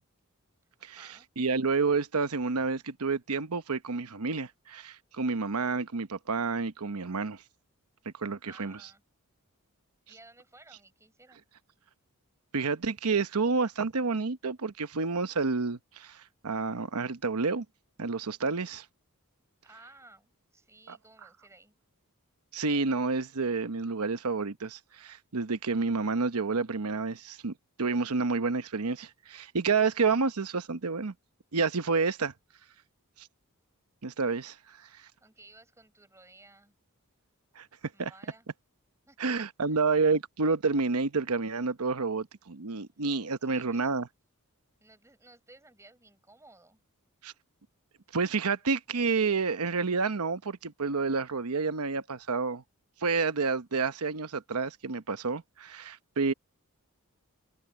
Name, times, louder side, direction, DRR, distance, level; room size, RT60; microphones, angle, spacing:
voice 1, 0.8-1.3 8.4-9.0 10.1-11.5 19.6-21.7 35.2-36.7 37.9-38.5 39.1-40.0 42.9-43.1 43.4-44.0 44.8-46.8, right 2 dB, 15° right, 5.6 m, -56 dB
voice 2, 1.4-7.4 8.2-8.8 12.5-17.6 18.0-18.8 20.9-21.0 22.5-27.5 27.8-31.1 31.5-32.3 33.2-33.3 34.0-34.6 37.6-37.7 38.0-38.1 39.2-44.1 47.2-47.3 48.1-52.6 53.0-56.3, right 4 dB, 85° right, 1.0 m, -29 dB
head